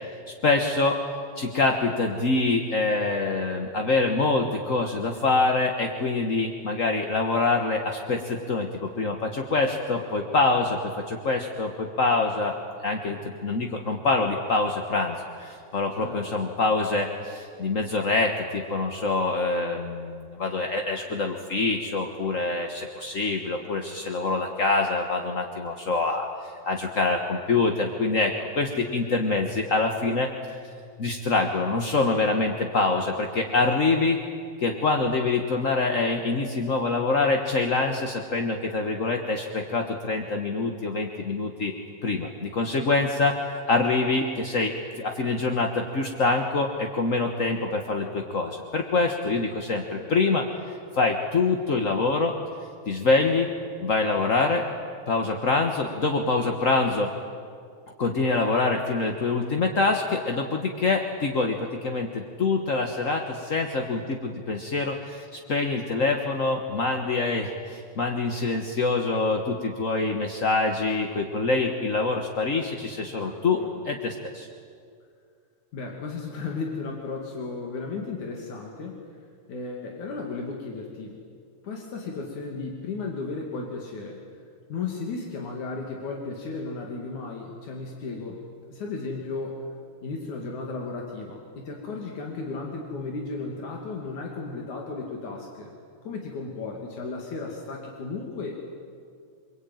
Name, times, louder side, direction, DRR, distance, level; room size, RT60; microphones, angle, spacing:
voice 1, 0.4-1.0 1.4-12.5 12.8-30.6 31.0-34.2 34.6-41.7 42.0-52.4 52.9-53.5 53.8-54.6 55.1-57.1 58.0-74.5, left 3 dB, 40° left, 3 dB, 1.1 m, -25 dB
voice 2, 73.2-73.7 75.7-79.0 79.5-81.1 81.6-84.2 84.7-88.4 88.7-89.6 90.0-95.7 96.1-98.6, left 4 dB, 85° left, 0 dB, 3.9 m, -34 dB
28.5 x 23.0 x 9.2 m, 2.3 s
omnidirectional pair, 3.3 m